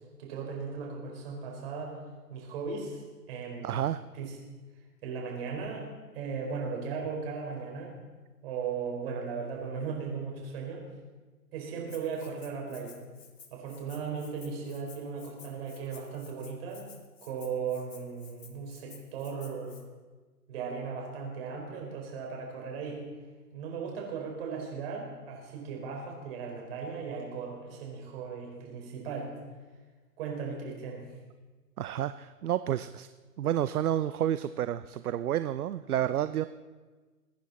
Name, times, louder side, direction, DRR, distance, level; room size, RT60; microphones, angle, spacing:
voice 1, 0.2-1.9 2.3-3.8 4.2-4.3 5.0-5.9 6.1-7.9 8.4-10.8 11.5-12.9 13.5-16.9 17.2-19.8 20.5-23.0 23.5-29.3 30.2-31.1, right 5 dB, 40° right, 0 dB, 4.8 m, -37 dB
voice 2, 3.6-4.0 31.8-33.1 33.4-36.5, right 11 dB, 65° right, 13 dB, 0.7 m, -30 dB
Rattle (instrument), 11.9-19.8, left 5 dB, 85° left, 2.5 m, -54 dB
22.5 x 9.9 x 4.2 m, 1.3 s
hypercardioid pair, 155°, 47 cm